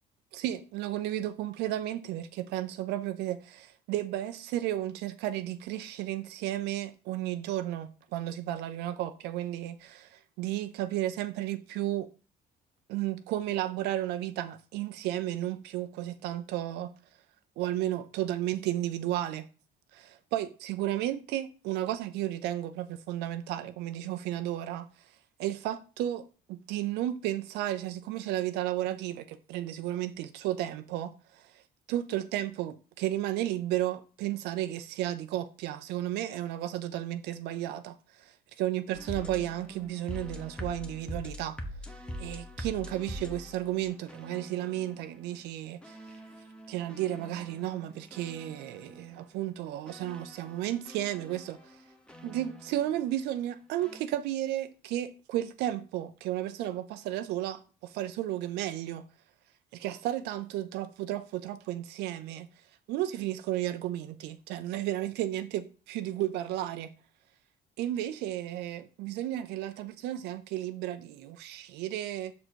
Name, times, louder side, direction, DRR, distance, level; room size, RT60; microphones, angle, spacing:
voice 1, 0.3-12.1 12.9-16.9 17.6-19.5 19.9-24.9 25.4-31.6 31.9-41.6 42.2-46.0 46.7-51.8 52.2-59.0 59.7-62.5 62.9-66.9 67.8-72.3, right 13 dB, 85° right, 0.5 m, -33 dB
sound 1, 38.9-45.0 45.8-49.1 49.9-53.0 53.8-54.0, equal, 5° left, 1.0 m, -44 dB
6.4 x 4.2 x 4.5 m
cardioid pair, 110°, 17 cm